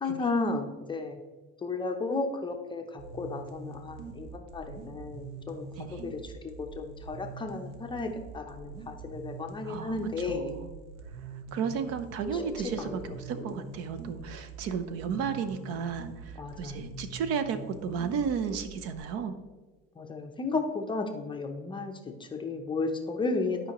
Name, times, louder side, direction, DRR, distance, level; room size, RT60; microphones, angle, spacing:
voice 1, 0.0-1.2 1.6-10.6 11.6-11.8 12.3-12.4 12.8-12.9 16.4-17.1 20.0-23.6, left 3 dB, 15° left, 4 dB, 0.6 m, -34 dB
sound 1, 3.0-19.0, right 5 dB, 80° right, 1.0 m, -44 dB
voice 2, 9.6-10.0 10.3-10.7 11.2-19.3, right 6 dB, 55° right, 11 dB, 0.7 m, -33 dB
sound 2, 12.3-16.9, left 1 dB, 5° right, 1.0 m, -47 dB
11.0 x 5.1 x 3.0 m, 1.2 s
cardioid pair, 135°, 29 cm